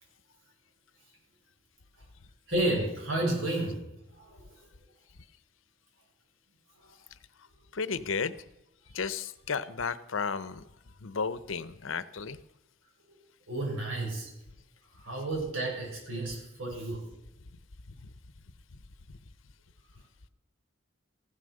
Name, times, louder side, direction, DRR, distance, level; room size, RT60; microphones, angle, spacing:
voice 1, 2.5-3.8 4.1-4.7 6.8-6.9 13.5-14.3 14.9-17.1, right 1 dB, 75° right, -1 dB, 6.7 m, -32 dB
voice 2, 7.7-8.3 8.9-10.6 11.0-12.4 16.3-16.4 18.0-18.1, left 5 dB, 75° left, 16 dB, 0.8 m, -33 dB
15.0 x 11.5 x 6.5 m, 0.92 s
head